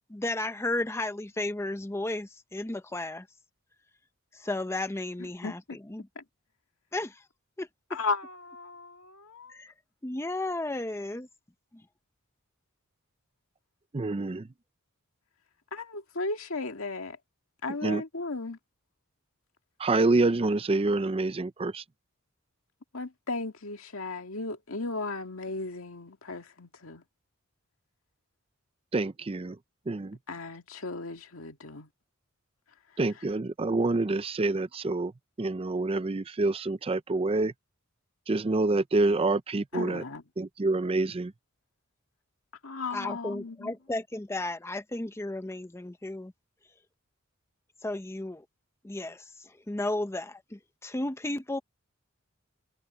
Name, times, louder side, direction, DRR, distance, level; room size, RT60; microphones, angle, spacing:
voice 1, 0.1-3.3 4.3-6.1 6.9-7.2 7.6-7.7 9.5-9.7 10.0-11.3 42.9-46.3 47.8-48.4 48.8-51.6, left 2 dB, 10° left, 0.6 m, -34 dB
voice 2, 7.9-9.5 15.7-17.2 17.6-18.6 22.9-27.0 30.3-31.9 39.7-40.2 42.6-43.7, left 3 dB, 75° left, 2.1 m, -35 dB
voice 3, 13.9-14.4 17.8-18.0 19.8-21.8 28.9-29.6 29.9-30.2 33.0-35.1 35.4-37.5 38.3-40.0 40.4-41.3, right 2 dB, 25° right, 0.5 m, -27 dB
head